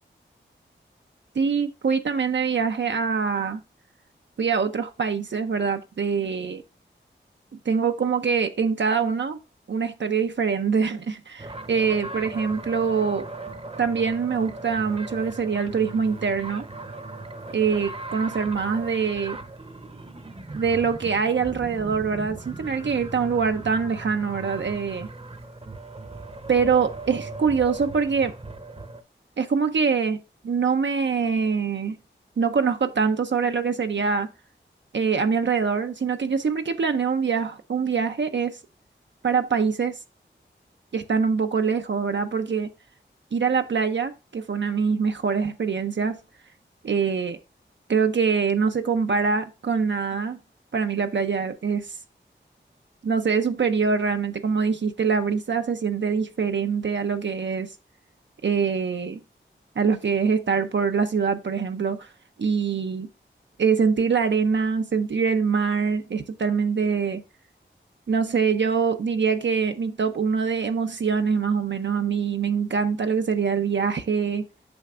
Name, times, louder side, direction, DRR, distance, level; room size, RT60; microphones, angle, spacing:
voice 1, 1.4-3.6 4.4-6.6 7.7-9.4 9.7-13.3 13.8-16.7 17.5-19.4 20.5-25.1 26.5-28.3 29.4-32.0 32.4-34.3 34.9-38.6 39.2-40.0 40.9-42.7 43.3-46.2 46.8-47.4 47.9-50.4 50.7-52.0 53.0-57.7 58.4-59.2 59.8-62.1 62.4-63.1 63.6-67.2 68.1-74.4, right 5 dB, 65° right, 0.6 m, -24 dB
sound 1, 11.4-29.0, right 2 dB, 30° right, 0.8 m, -38 dB
8.7 x 5.7 x 2.4 m
wide cardioid pair, 55°, 20 cm